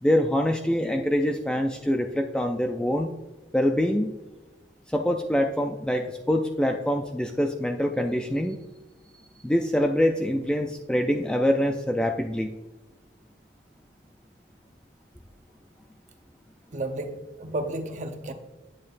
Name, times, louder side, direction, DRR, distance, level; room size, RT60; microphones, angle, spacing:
voice 1, 0.0-3.1 3.5-4.1 4.9-8.6 9.4-12.6, equal, 5° left, 3 dB, 0.4 m, -25 dB
voice 2, 16.7-18.3, right 2 dB, 40° right, 5 dB, 0.9 m, -32 dB
8.6 x 8.5 x 2.5 m, 1.1 s
head